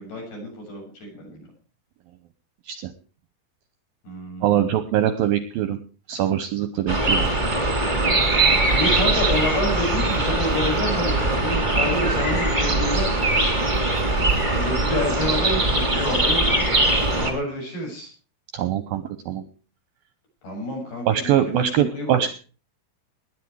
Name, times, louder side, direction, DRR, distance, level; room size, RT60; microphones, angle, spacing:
voice 1, 0.0-1.5 4.0-4.7 8.5-13.1 14.5-16.5 17.1-18.1 20.4-21.7 21.9-22.2, left 1 dB, 60° left, 1 dB, 8.5 m, -29 dB
voice 2, 4.4-5.8 6.1-7.3 18.5-19.4 21.1-22.3, right 11 dB, 75° right, 12 dB, 2.2 m, -23 dB
sound 1, 6.9-17.3, right 2 dB, 15° right, 1.6 m, -21 dB
19.5 x 10.0 x 4.7 m, 0.36 s
omnidirectional pair, 5.1 m